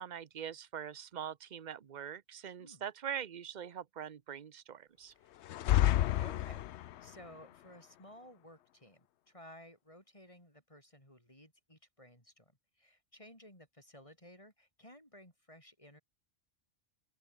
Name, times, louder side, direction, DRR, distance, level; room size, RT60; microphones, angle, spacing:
voice 1, 0.0-5.1, right 8 dB, 45° right, 0.9 m, -43 dB
sound 1, 5.4-7.1, left 13 dB, 75° left, 0.9 m, -29 dB
voice 2, 5.6-16.0, equal, 30° left, 8.1 m, -56 dB
open air
omnidirectional pair, 1.2 m